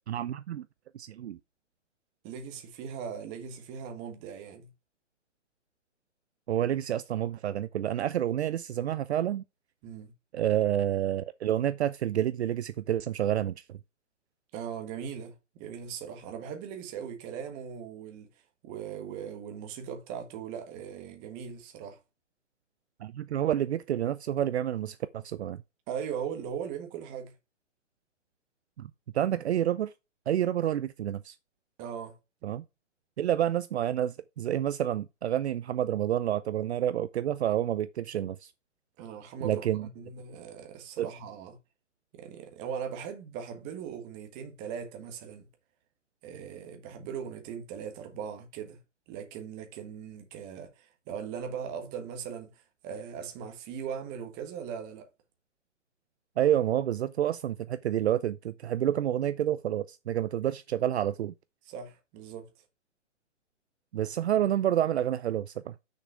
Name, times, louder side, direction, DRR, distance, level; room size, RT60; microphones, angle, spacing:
voice 1, 0.1-0.6 0.9-1.4 6.5-9.4 10.3-13.8 23.0-25.6 28.8-28.9 29.1-29.9 30.3-31.4 32.4-32.6 33.2-38.5 39.4-39.9 41.0-41.1 56.4-61.3 63.9-65.7, right 11 dB, 60° right, 0.6 m, -29 dB
voice 2, 2.2-4.7 9.8-10.1 14.5-18.3 18.6-22.0 25.9-27.3 31.8-32.2 39.0-41.6 42.1-45.5 46.2-48.8 49.1-55.1 61.7-62.5, right 7 dB, 20° right, 1.5 m, -39 dB
6.5 x 5.4 x 4.7 m
hypercardioid pair, 155°, 37 cm